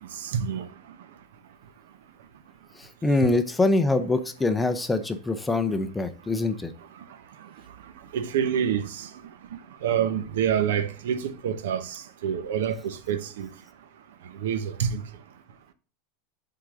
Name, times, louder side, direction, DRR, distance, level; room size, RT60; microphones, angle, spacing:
voice 1, 0.2-0.7 3.2-3.3 8.1-9.1 9.8-13.5 14.4-15.0, right 8 dB, 85° right, 0.9 m, -27 dB
voice 2, 2.8-6.7, left 2 dB, 5° left, 0.5 m, -24 dB
7.9 x 3.9 x 3.7 m
supercardioid pair, 170°, 0 cm